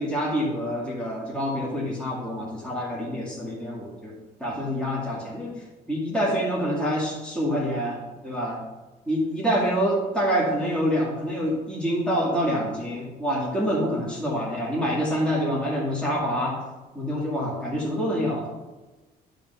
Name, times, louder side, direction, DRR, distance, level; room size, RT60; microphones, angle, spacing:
voice 1, 0.0-5.5 5.9-8.5 9.1-16.6 16.9-18.5, equal, 5° left, -5 dB, 2.2 m, -26 dB
10.5 x 3.6 x 5.7 m, 1.2 s
cardioid pair, 110°, 17 cm